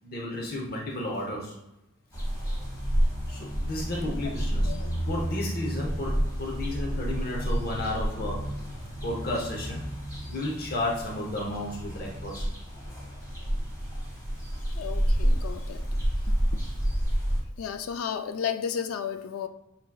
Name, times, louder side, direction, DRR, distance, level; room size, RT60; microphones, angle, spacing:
voice 1, 0.0-1.6 3.3-4.7 5.1-8.7 9.0-9.9 10.3-12.4, left 1 dB, 45° left, -1 dB, 0.8 m, -33 dB
sound 1, 2.1-17.4, equal, 15° left, 1.4 m, -30 dB
voice 2, 14.7-15.8 16.3-16.6 17.6-19.5, left 7 dB, 65° left, 8 dB, 0.3 m, -33 dB
5.8 x 3.7 x 2.3 m, 0.89 s
head